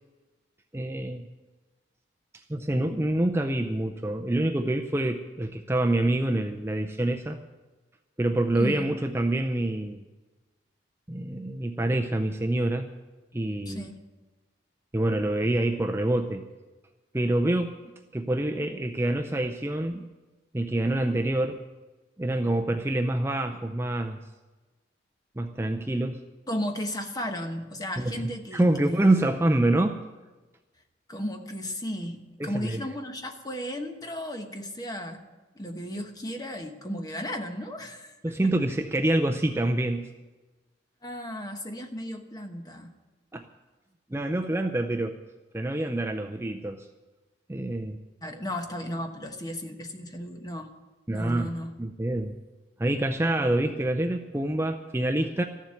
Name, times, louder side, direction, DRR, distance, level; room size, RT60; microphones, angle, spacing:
voice 1, 0.7-1.3 2.5-7.4 8.2-10.0 11.1-12.9 13.3-13.9 14.9-16.4 17.1-17.7 18.1-20.0 20.5-21.6 22.2-24.2 25.4-26.2 28.0-28.2 28.5-30.0 32.4-32.8 38.2-40.1 43.3-43.4 44.1-45.2 45.5-46.9 47.5-48.0 51.1-51.5 51.8-52.4 52.8-55.4, right 1 dB, 15° right, 4 dB, 0.5 m, -26 dB
voice 2, 8.6-8.9 13.7-14.0 26.5-29.2 31.1-35.2 35.5-38.1 41.0-42.9 48.2-50.7 51.1-51.8, equal, 20° left, 5 dB, 1.1 m, -35 dB
14.0 x 7.4 x 9.5 m, 1.2 s
head